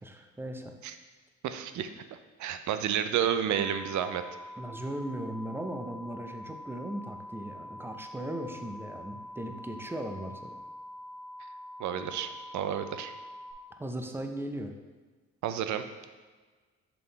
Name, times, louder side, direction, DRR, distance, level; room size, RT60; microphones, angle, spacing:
voice 1, 0.0-0.7 4.6-10.6 13.8-14.7, right 1 dB, 10° right, 5 dB, 0.6 m, -38 dB
voice 2, 1.4-1.9 2.4-4.2 11.8-13.1 15.4-15.8, right 9 dB, 70° right, 10 dB, 0.5 m, -30 dB
sound 1, 3.5-13.5, left 1 dB, 90° left, 1.7 m, -45 dB
6.9 x 3.6 x 3.9 m, 1.4 s
cardioid pair, 90°, 30 cm